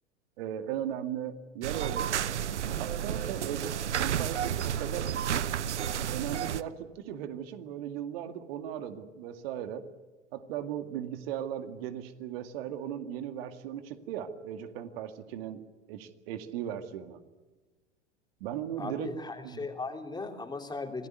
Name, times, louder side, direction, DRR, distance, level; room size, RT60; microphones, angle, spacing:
voice 1, 0.4-2.1 2.8-5.1 6.1-9.9 10.3-15.6 15.9-17.2 18.4-19.1 19.4-19.6, right 10 dB, 55° right, 9 dB, 2.2 m, -37 dB
sound 1, 1.6-6.6, right 9 dB, 75° right, 1.0 m, -31 dB
voice 2, 18.8-21.1, left 3 dB, 10° left, 5 dB, 3.4 m, -37 dB
27.0 x 18.5 x 9.4 m, 1.2 s
figure-of-eight pair, 90°, 35 cm